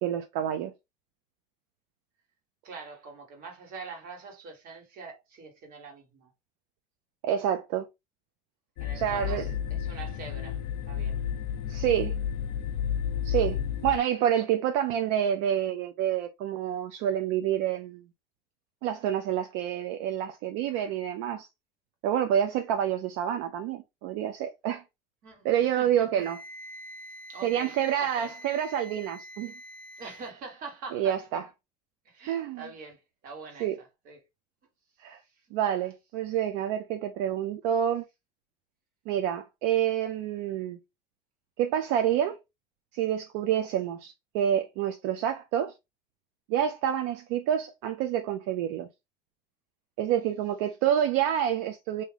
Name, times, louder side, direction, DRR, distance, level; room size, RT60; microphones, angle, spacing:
voice 1, 0.0-0.7 7.2-7.9 8.9-9.5 11.7-12.1 13.2-18.0 18.8-21.5 22.0-24.8 25.4-26.4 27.4-29.5 30.9-31.5 32.3-32.7 33.6-33.8 35.0-35.2 35.5-38.0 39.1-40.8 41.6-42.4 42.9-45.7 46.5-48.9 50.0-52.0, right 10 dB, 75° right, 0.5 m, -28 dB
voice 2, 2.6-6.3 8.8-10.6 10.9-11.2 20.7-20.9 25.2-26.1 27.3-28.3 30.0-31.2 32.0-34.2, right 4 dB, 50° right, 1.5 m, -44 dB
sound 1, 8.8-14.0, left 9 dB, 70° left, 0.7 m, -31 dB
Wind instrument woodwind instrument, 26.2-30.4, equal, 10° left, 0.4 m, -46 dB
3.5 x 2.7 x 3.3 m
cardioid pair, 150°, 19 cm